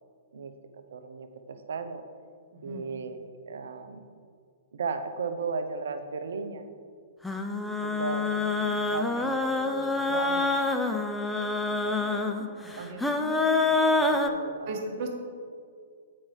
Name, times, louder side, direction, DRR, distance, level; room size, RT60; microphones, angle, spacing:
voice 1, 0.3-2.0 2.6-3.2 3.5-4.2 4.7-6.6 7.8-11.1 12.2-12.9 13.3-14.8, right 4 dB, 65° right, 8 dB, 0.6 m, -37 dB
voice 2, 2.5-2.9 12.6-13.4 14.7-15.1, right 2 dB, 45° right, 2 dB, 1.3 m, -37 dB
sound 1, 7.2-14.3, left 3 dB, 5° left, 0.5 m, -27 dB
7.5 x 5.5 x 4.5 m, 2.1 s
figure-of-eight pair, 115°, 0 cm